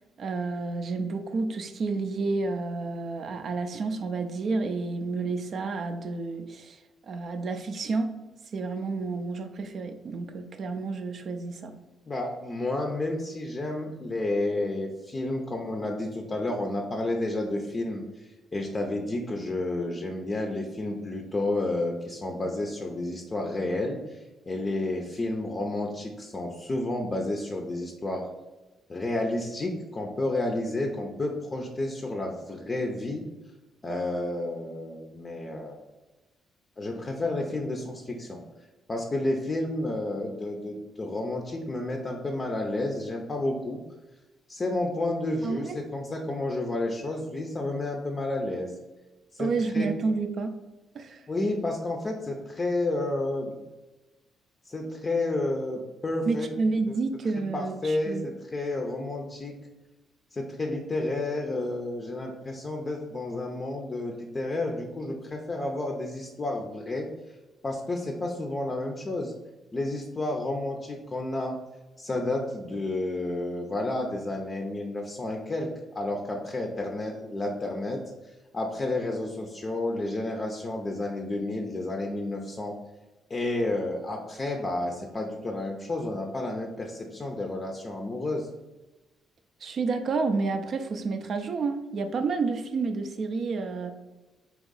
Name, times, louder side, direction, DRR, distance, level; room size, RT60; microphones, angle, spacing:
voice 1, 0.2-8.1 8.5-11.7 45.4-45.8 49.4-50.5 50.9-51.2 56.3-58.3 89.6-93.9, right 4 dB, 55° right, 7 dB, 0.4 m, -30 dB
voice 2, 12.1-24.2 24.5-28.3 28.9-33.2 33.8-35.8 36.8-38.4 38.9-43.8 44.5-48.7 49.3-49.9 51.3-53.6 54.7-56.5 57.5-59.6 60.3-67.1 67.6-69.3 69.7-71.6 72.0-75.7 75.9-78.0 78.5-82.7 83.3-88.5, left 2 dB, 30° left, 1 dB, 0.5 m, -31 dB
3.6 x 2.9 x 3.9 m, 1.1 s
cardioid pair, 90°, 0 cm